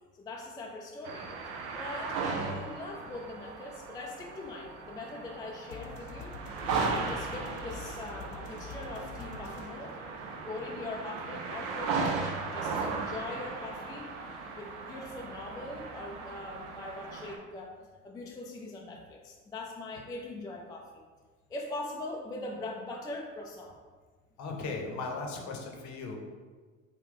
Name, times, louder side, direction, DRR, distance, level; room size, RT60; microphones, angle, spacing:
voice 1, 0.1-6.4 6.9-9.9 10.5-14.1 14.5-17.8 18.0-21.0 21.5-23.8, left 2 dB, 10° left, 0 dB, 0.3 m, -41 dB
sound 1, 1.0-17.4, right 4 dB, 65° right, 0.7 m, -37 dB
sound 2, 5.7-11.7, left 4 dB, 75° left, 0.6 m, -46 dB
voice 2, 24.4-26.2, left 3 dB, 45° left, 2 dB, 0.8 m, -37 dB
3.8 x 2.2 x 3.6 m, 1.4 s
hypercardioid pair, 75°, 38 cm